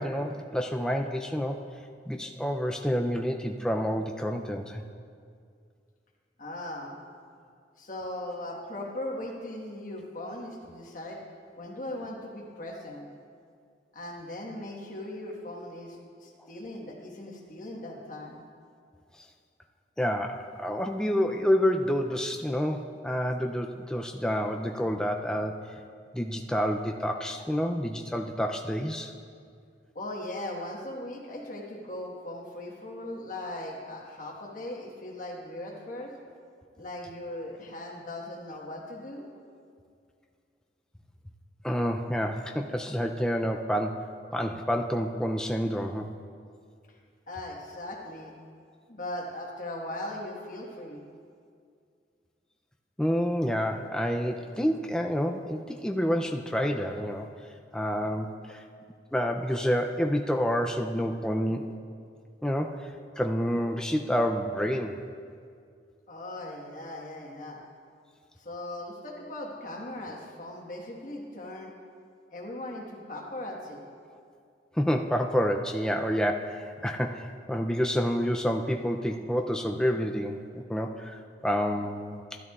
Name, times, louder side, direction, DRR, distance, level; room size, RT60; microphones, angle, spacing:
voice 1, 0.0-1.7 2.1-4.8 19.2-19.3 20.0-25.8 26.1-29.1 41.6-46.1 53.0-57.3 57.7-58.6 59.1-61.7 62.4-65.0 74.7-82.4, equal, 5° left, 2 dB, 0.3 m, -28 dB
voice 2, 6.4-6.9 7.8-11.2 11.6-13.1 13.9-18.4 29.9-36.1 36.8-39.3 46.9-47.0 47.3-48.3 48.9-51.0 66.1-67.6 68.4-71.7 72.3-73.8, left 1 dB, 50° left, -1 dB, 1.4 m, -39 dB
13.0 x 12.0 x 2.4 m, 2.2 s
head